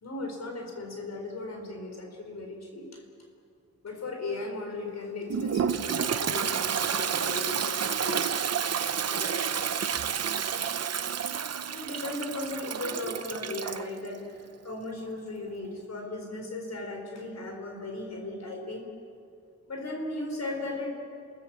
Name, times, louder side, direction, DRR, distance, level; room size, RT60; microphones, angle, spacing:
voice 1, 0.0-3.0 3.8-8.4 9.1-9.8 11.7-14.4 14.6-18.9 19.7-20.9, left 2 dB, 65° left, 2 dB, 4.3 m, -37 dB
Toilet flush, 5.3-13.9, right 7 dB, 60° right, 0.8 m, -30 dB
29.0 x 19.0 x 7.4 m, 2.4 s
wide cardioid pair, 110°, 29 cm